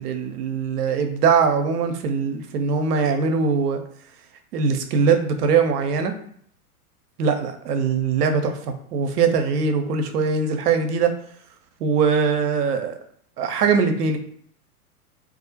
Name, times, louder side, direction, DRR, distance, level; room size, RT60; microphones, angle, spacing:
voice 1, 0.0-3.8 4.5-6.1 7.2-8.6 8.9-11.1 11.8-12.9 13.4-14.2, right 5 dB, 85° right, 7 dB, 0.6 m, -21 dB
2.4 x 2.1 x 2.7 m, 0.64 s
hypercardioid pair, 110°, 46 cm